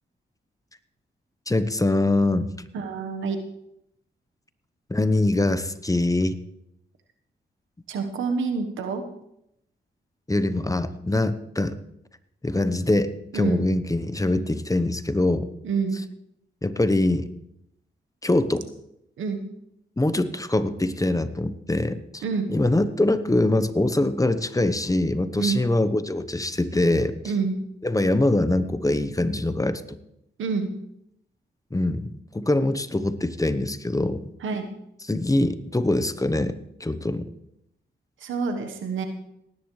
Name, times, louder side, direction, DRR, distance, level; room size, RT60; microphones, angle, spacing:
voice 1, 1.5-2.5 4.9-6.4 10.3-11.8 12.4-15.5 16.6-17.3 18.2-18.7 20.0-22.2 22.5-27.1 27.8-30.0 31.7-32.1 32.3-34.3 35.1-36.5 36.8-37.3, left 2 dB, 15° left, 12 dB, 0.9 m, -23 dB
voice 2, 2.7-3.4 7.9-9.0 13.3-13.7 15.6-16.0 19.2-19.4 22.2-22.5 25.4-25.6 27.2-27.5 30.4-30.7 34.4-34.7 38.2-39.1, right 5 dB, 90° right, 6 dB, 1.3 m, -27 dB
19.0 x 10.5 x 3.2 m, 0.79 s
cardioid pair, 50°, 20 cm